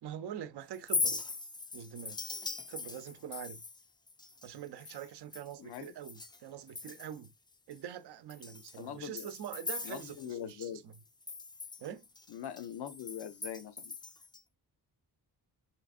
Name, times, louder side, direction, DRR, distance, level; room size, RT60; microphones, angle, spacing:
voice 1, 0.0-1.2 1.7-2.2 2.7-3.6 4.4-7.3 7.7-11.0 11.8-12.0, right 9 dB, 80° right, 0.6 m, -44 dB
Chink clink, 0.7-6.4 6.7-7.3 7.7-7.8 8.3-10.7 10.9-14.4, left 4 dB, 10° left, 0.3 m, -40 dB
voice 2, 5.6-5.9 8.8-9.3 9.8-10.8 12.3-13.9, left 9 dB, 80° left, 0.7 m, -42 dB
5.5 x 3.4 x 2.4 m
cardioid pair, 85°, 39 cm